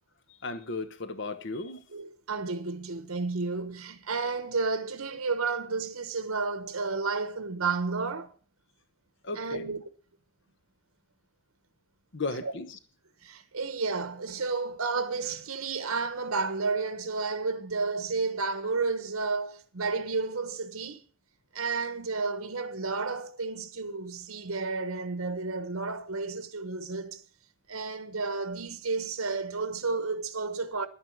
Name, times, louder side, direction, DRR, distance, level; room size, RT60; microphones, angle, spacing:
voice 1, 0.4-1.8 9.2-9.7 12.1-12.8, left 3 dB, 55° left, 1.1 m, -35 dB
voice 2, 1.9-8.3 9.3-9.8 12.3-12.5 13.2-21.0 21.5-27.2 27.7-30.9, right 4 dB, 80° right, 1.1 m, -31 dB
11.0 x 9.7 x 6.0 m
head